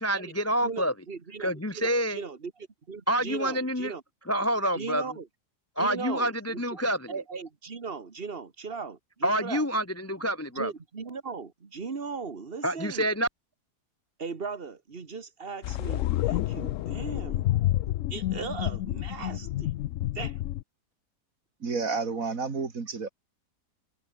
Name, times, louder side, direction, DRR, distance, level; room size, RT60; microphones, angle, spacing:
voice 1, 0.0-0.9 1.4-2.2 3.1-3.9 4.3-5.0 5.8-7.1 9.2-10.7 12.6-13.3, equal, 10° left, 0.8 m, -27 dB
voice 2, 0.6-4.0 4.7-5.3 5.8-9.7 10.6-13.1 14.2-17.5 18.1-19.7 20.1-20.4, right 5 dB, 35° right, 1.9 m, -38 dB
sound 1, 15.6-20.6, left 14 dB, 70° left, 0.7 m, -29 dB
voice 3, 21.6-23.1, right 4 dB, 55° right, 2.6 m, -30 dB
omnidirectional pair, 1.8 m